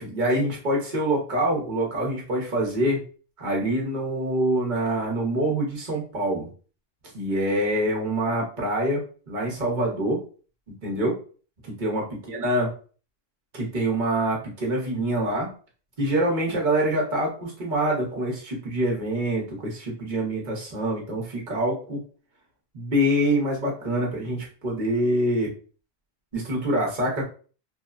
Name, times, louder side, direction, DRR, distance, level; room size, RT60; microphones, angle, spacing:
voice 1, 0.0-3.0 3.4-6.5 7.1-10.2 10.8-11.1 11.8-12.0 12.3-12.7 13.5-15.5 16.0-22.0 22.7-25.5 26.3-27.2, right 1 dB, 50° right, -2 dB, 1.0 m, -25 dB
3.1 x 2.0 x 2.3 m, 0.40 s
omnidirectional pair, 1.1 m